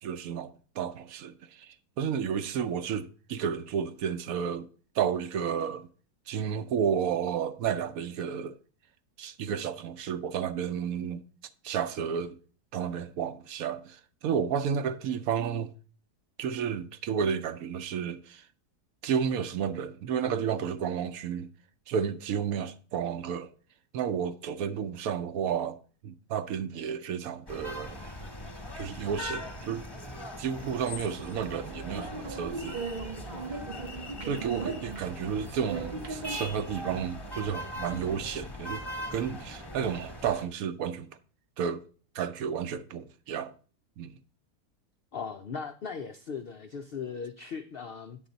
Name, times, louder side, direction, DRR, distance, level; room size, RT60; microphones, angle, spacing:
voice 1, 0.0-4.7 4.9-5.9 6.3-8.6 9.2-11.2 11.6-12.4 12.7-15.7 16.4-18.4 19.0-21.5 21.9-23.5 23.9-25.8 26.0-28.0 28.7-29.8 30.4-32.8 34.2-38.8 39.1-41.2 41.6-41.8 42.1-43.5 44.0-44.2, right 7 dB, 70° right, 1.0 m, -32 dB
sound 1, 27.5-40.5, left 1 dB, 15° left, 1.2 m, -41 dB
sound 2, 30.6-36.4, right 4 dB, 40° right, 0.7 m, -39 dB
voice 2, 45.1-48.2, left 6 dB, 75° left, 0.5 m, -38 dB
9.2 x 7.1 x 3.9 m
omnidirectional pair, 1.7 m